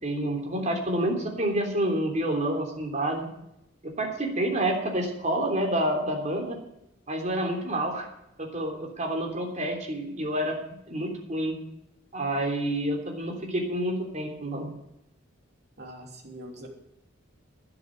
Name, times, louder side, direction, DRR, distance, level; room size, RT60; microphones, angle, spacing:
voice 1, 0.0-3.3 4.0-6.6 7.1-8.1 8.4-11.5 12.1-14.7, right 1 dB, 40° right, 1 dB, 3.4 m, -28 dB
voice 2, 15.8-16.7, right 1 dB, 55° right, 1 dB, 3.2 m, -43 dB
12.0 x 10.0 x 7.7 m, 0.82 s
head